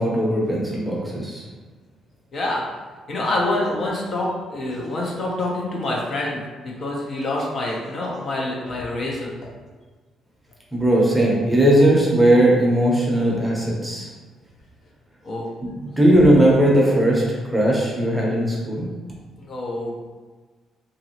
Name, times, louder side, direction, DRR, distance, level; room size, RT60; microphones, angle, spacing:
voice 1, 0.0-1.4 10.7-14.1 16.0-17.2 17.5-18.9, right 1 dB, 10° right, -4 dB, 0.7 m, -18 dB
voice 2, 2.3-2.6 3.1-9.3 15.2-15.5 19.4-20.0, left 2 dB, 45° left, -3 dB, 0.6 m, -26 dB
2.9 x 2.6 x 2.8 m, 1.4 s
cardioid pair, 115°, 0 cm